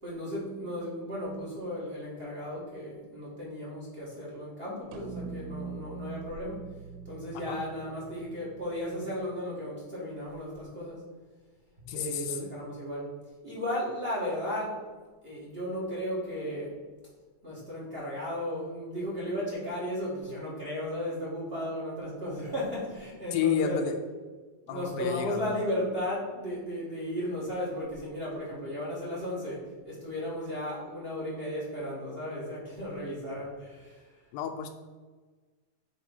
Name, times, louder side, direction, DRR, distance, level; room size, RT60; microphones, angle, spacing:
voice 1, 0.0-6.7 7.0-11.0 11.8-13.1 13.4-14.8 15.2-16.7 17.4-23.8 24.7-34.1, left 1 dB, 30° right, -6 dB, 1.1 m, -35 dB
sound 1, 4.9-9.4, right 5 dB, 90° right, 2.5 m, -43 dB
voice 2, 11.9-12.5 23.3-24.0 24.7-25.5 34.3-34.7, left 8 dB, 85° left, 5 dB, 2.2 m, -31 dB
7.5 x 3.5 x 5.4 m, 1.4 s
omnidirectional pair, 4.0 m